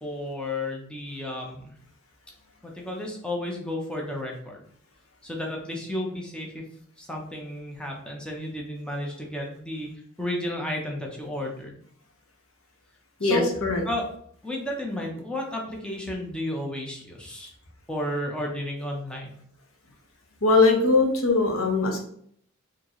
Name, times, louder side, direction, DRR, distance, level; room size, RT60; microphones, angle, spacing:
voice 1, 0.0-1.7 2.6-4.6 5.2-6.6 7.0-9.9 10.2-11.8 13.2-13.5 13.8-14.0 14.4-17.5 17.9-19.3, left 1 dB, 5° left, -1 dB, 0.7 m, -32 dB
voice 2, 13.2-13.8 20.4-22.0, left 3 dB, 90° left, 1 dB, 1.0 m, -21 dB
4.2 x 3.0 x 3.0 m, 0.63 s
head